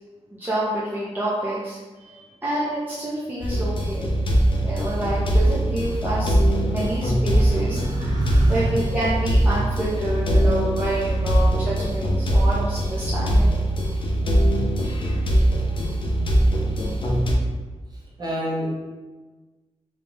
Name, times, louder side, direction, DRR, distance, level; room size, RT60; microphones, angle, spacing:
voice 1, 0.3-4.1 4.6-6.3 6.6-7.8 8.5-13.6, right 1 dB, 15° right, -8 dB, 0.6 m, -28 dB
sound 1, 3.4-17.3, right 1 dB, 45° left, 0.5 m, -21 dB
voice 2, 7.4-8.8 18.2-18.7, right 1 dB, 35° right, -5 dB, 0.9 m, -29 dB
3.6 x 2.3 x 3.8 m, 1.3 s
wide cardioid pair, 160°, 12 cm